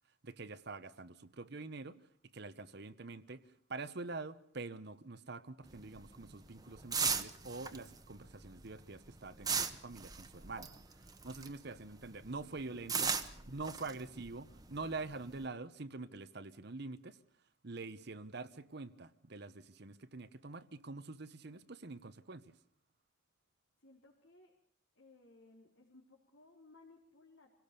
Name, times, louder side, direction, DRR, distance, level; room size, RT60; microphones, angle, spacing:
voice 1, 0.2-2.0 2.3-10.7 11.0-17.2 17.6-22.6, right 3 dB, 55° right, 12 dB, 1.0 m, -46 dB
sound 1, 5.7-11.7 12.0-15.4, right 6 dB, 20° right, 1.2 m, -38 dB
voice 2, 13.1-13.8 23.8-24.5 25.0-27.5, left 2 dB, 75° left, -3 dB, 3.7 m, -62 dB
26.5 x 17.5 x 6.8 m, 0.63 s
head